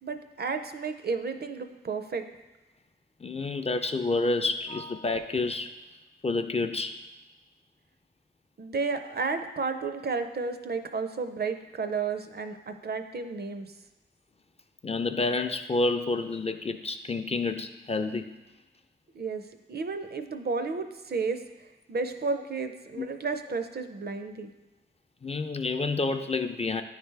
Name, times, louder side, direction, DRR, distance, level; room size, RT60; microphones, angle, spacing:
voice 1, 0.0-2.3 8.6-13.7 19.1-24.5, right 4 dB, 55° right, 8 dB, 0.5 m, -32 dB
voice 2, 3.2-5.7 6.2-7.0 14.8-18.3 23.0-23.1 25.2-26.8, left 3 dB, 35° left, 7 dB, 0.4 m, -29 dB
9.4 x 3.3 x 3.3 m, 1.1 s
cardioid pair, 50°, 19 cm